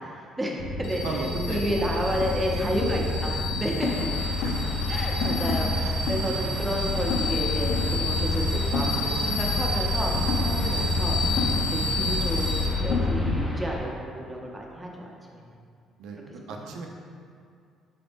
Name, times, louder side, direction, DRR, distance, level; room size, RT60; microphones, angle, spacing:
voice 1, 0.0-4.1 4.9-11.2 11.7-15.6 16.5-16.8, equal, 15° right, -2 dB, 0.7 m, -31 dB
sound 1, 0.6-13.5, left 2 dB, 70° left, 0.6 m, -26 dB
voice 2, 1.0-1.9 4.4-4.7 10.6-10.8 16.0-16.2 16.5-16.9, right 3 dB, 80° right, 1 dB, 0.5 m, -35 dB
sound 2, 3.8-13.8, equal, 20° left, 0.8 m, -42 dB
3.9 x 3.8 x 3.5 m, 2.3 s
cardioid pair, 115°, 0 cm